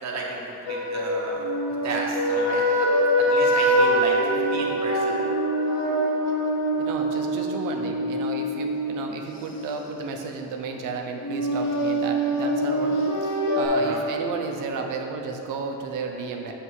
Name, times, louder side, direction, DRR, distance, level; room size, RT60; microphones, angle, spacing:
voice 1, 0.0-1.5 1.8-2.6 3.3-5.2 13.7-14.0, right 3 dB, 60° right, -1 dB, 1.1 m, -33 dB
sound 1, 0.7-9.7 11.2-13.7, equal, 60° left, 0.9 m, -24 dB
voice 2, 6.8-16.5, right 4 dB, 85° right, 2 dB, 0.7 m, -33 dB
6.6 x 3.3 x 4.6 m, 2.8 s
cardioid pair, 100°, 31 cm